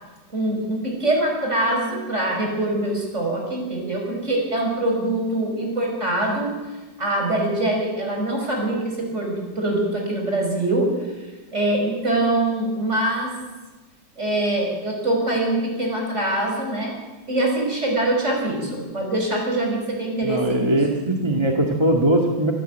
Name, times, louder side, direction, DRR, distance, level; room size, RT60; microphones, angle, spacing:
voice 1, 0.3-6.5 7.0-10.9 11.5-13.3 14.2-17.0 17.3-20.8, right 1 dB, 40° right, 1 dB, 6.2 m, -23 dB
voice 2, 20.2-22.5, right 1 dB, 15° right, 1 dB, 1.7 m, -20 dB
25.5 x 12.5 x 9.1 m, 1.2 s
omnidirectional pair, 2.0 m